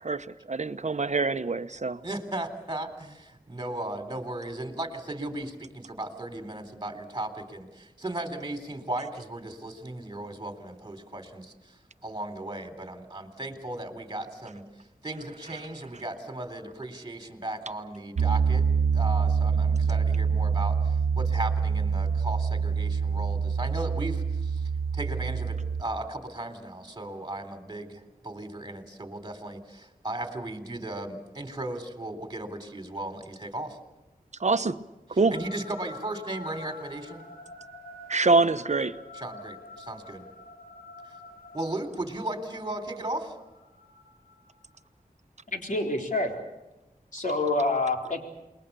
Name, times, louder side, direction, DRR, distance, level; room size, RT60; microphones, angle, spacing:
voice 1, 0.0-2.0 34.4-34.8 35.1-35.3 38.1-39.0, right 3 dB, 50° right, 1.0 m, -25 dB
voice 2, 2.0-14.6 15.0-18.6 18.9-33.8 35.3-37.2 39.1-40.3 41.1-41.2 41.5-43.4, right 1 dB, 25° right, 3.6 m, -36 dB
Piano, 18.2-25.8, right 6 dB, 85° right, 0.8 m, -26 dB
sound 1, 35.3-44.8, left 2 dB, 85° left, 5.1 m, -48 dB
voice 3, 45.5-46.3 47.1-48.3, left 2 dB, 60° left, 4.1 m, -27 dB
28.5 x 22.0 x 6.9 m
wide cardioid pair, 75°, 15 cm